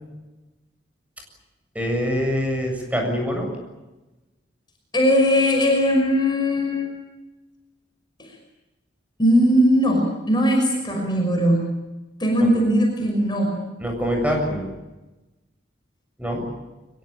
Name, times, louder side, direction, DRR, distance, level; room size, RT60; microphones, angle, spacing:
voice 1, 1.7-3.5 13.8-14.6 16.2-16.4, equal, 10° right, 2 dB, 7.4 m, -24 dB
voice 2, 4.9-6.9 8.2-8.3 9.2-11.7 12.2-13.5, equal, 25° left, 2 dB, 5.9 m, -19 dB
24.5 x 22.5 x 8.9 m, 1.1 s
head